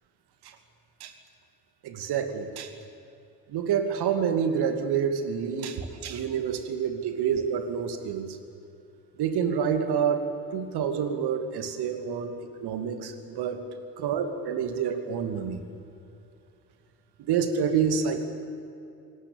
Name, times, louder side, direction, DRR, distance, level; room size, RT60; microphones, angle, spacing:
voice 1, 1.8-2.7 3.5-8.4 9.2-12.3 12.6-13.6 14.0-15.6 17.3-18.2, right 7 dB, 60° right, 8 dB, 2.6 m, -28 dB
27.5 x 19.0 x 8.7 m, 2.7 s
figure-of-eight pair, 45°, 44 cm